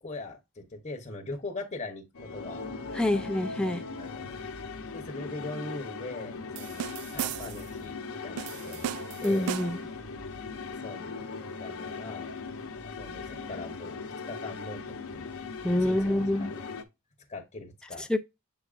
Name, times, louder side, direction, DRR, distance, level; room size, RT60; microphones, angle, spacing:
voice 1, 0.0-2.6 3.1-3.2 4.0-4.2 4.9-7.9 8.2-9.5 10.7-11.1 11.6-12.3 12.8-14.0 14.3-14.8 15.1-15.3 15.8-16.5 17.3-18.1, left 2 dB, 30° left, 0.9 m, -41 dB
sound 1, 2.1-16.8, left 4 dB, 65° left, 0.9 m, -39 dB
voice 2, 2.9-3.8 9.2-9.8 15.6-16.5 18.0-18.2, left 1 dB, 5° left, 0.4 m, -26 dB
sound 2, 6.6-7.7 8.4-9.9, right 10 dB, 80° right, 0.3 m, -36 dB
7.7 x 4.9 x 2.4 m
head